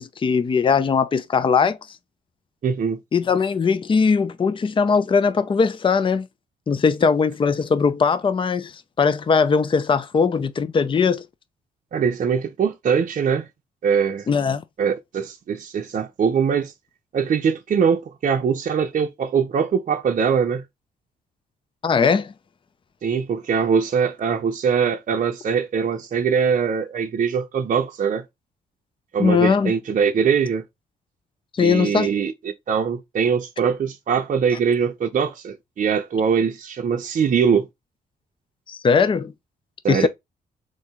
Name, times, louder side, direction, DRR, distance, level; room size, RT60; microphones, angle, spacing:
voice 1, 0.0-1.8 3.1-6.3 6.7-11.2 14.3-14.6 21.8-22.3 29.2-29.7 31.5-32.1 38.7-39.3 39.9-40.1, left 5 dB, 30° left, 0.5 m, -20 dB
voice 2, 2.6-3.0 11.9-13.5 13.8-14.3 14.8-16.7 17.1-20.6 23.0-28.2 29.1-30.6 31.6-32.3 32.7-37.7 39.8-40.1, right 6 dB, 45° right, 0.6 m, -22 dB
3.8 x 2.7 x 3.5 m
supercardioid pair, 55°, 17 cm